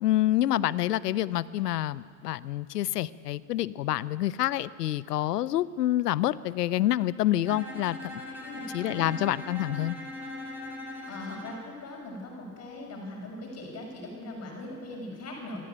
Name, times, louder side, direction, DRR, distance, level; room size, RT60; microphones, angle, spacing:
voice 1, 0.0-8.2 8.7-10.0, left 14 dB, 90° left, 18 dB, 0.8 m, -27 dB
Bowed string instrument, 7.5-11.7, left 1 dB, 5° right, 4.9 m, -40 dB
voice 2, 8.4-9.2 11.1-15.6, left 2 dB, 35° left, 1 dB, 6.4 m, -40 dB
23.0 x 14.5 x 9.2 m, 2.1 s
hypercardioid pair, 105°, 46 cm